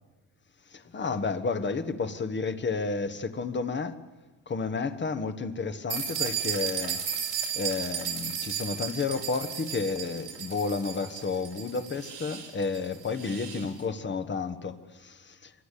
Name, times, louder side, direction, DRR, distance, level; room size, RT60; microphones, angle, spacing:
voice 1, 0.7-4.0 4.5-7.0 7.5-15.5, left 4 dB, 25° left, 1.3 m, -31 dB
sound 1, 5.9-13.7, right 7 dB, 80° right, 6.0 m, -34 dB
27.0 x 25.0 x 8.4 m
cardioid pair, 170°, 40 cm